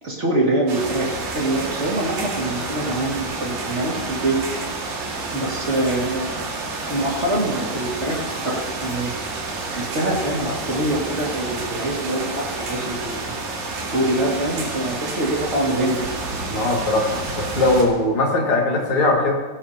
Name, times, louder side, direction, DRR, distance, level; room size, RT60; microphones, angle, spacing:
voice 1, 0.0-4.6 5.3-6.4 6.8-9.1 9.7-13.3 13.8-16.1, right 1 dB, 25° right, -2 dB, 1.8 m, -24 dB
sound 1, 0.7-17.8, right 3 dB, 85° right, 3.9 m, -29 dB
voice 2, 16.5-19.3, left 2 dB, 40° left, -2 dB, 2.8 m, -20 dB
18.0 x 17.5 x 2.9 m, 1.3 s
omnidirectional pair, 4.0 m